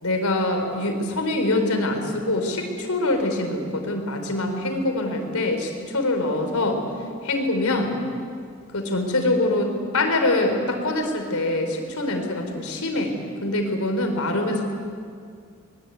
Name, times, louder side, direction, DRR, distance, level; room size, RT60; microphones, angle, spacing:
voice 1, 0.0-6.8 7.2-7.9 8.7-14.7, left 2 dB, 90° left, 5 dB, 4.1 m, -24 dB
23.5 x 21.5 x 9.2 m, 2.2 s
head